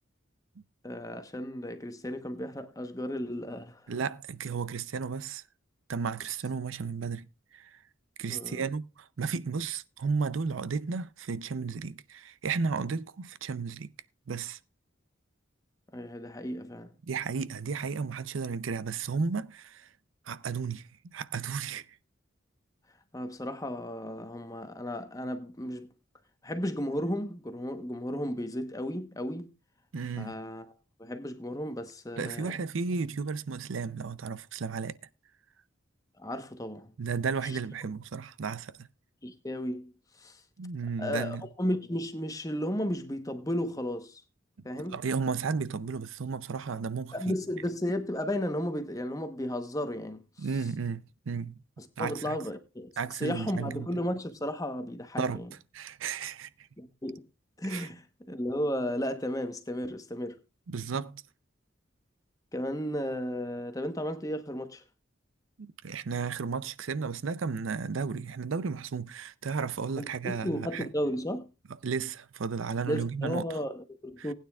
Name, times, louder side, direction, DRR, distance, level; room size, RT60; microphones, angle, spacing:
voice 1, 0.8-3.8 8.3-8.7 15.9-16.9 23.1-25.9 26.4-29.5 30.2-30.7 31.0-32.5 36.2-36.9 37.4-37.6 39.2-39.9 40.2-40.4 41.0-44.2 44.6-45.0 47.1-50.5 51.8-55.5 56.8-57.3 57.6-60.4 60.9-61.0 62.5-64.8 70.0-71.5 72.9-74.3, equal, 15° left, 1.0 m, -34 dB
voice 2, 3.9-5.4 5.9-7.3 7.5-7.8 8.2-13.9 14.3-14.6 17.1-19.9 20.3-21.9 29.9-30.4 32.2-35.0 37.0-38.9 40.6-41.5 44.9-47.1 50.4-51.6 52.0-52.4 53.0-53.9 55.2-55.4 55.7-56.7 57.7-57.9 60.7-61.2 65.6-70.9 71.8-73.4 74.2-74.3, right 5 dB, 80° right, 0.5 m, -33 dB
19.5 x 9.3 x 2.4 m
head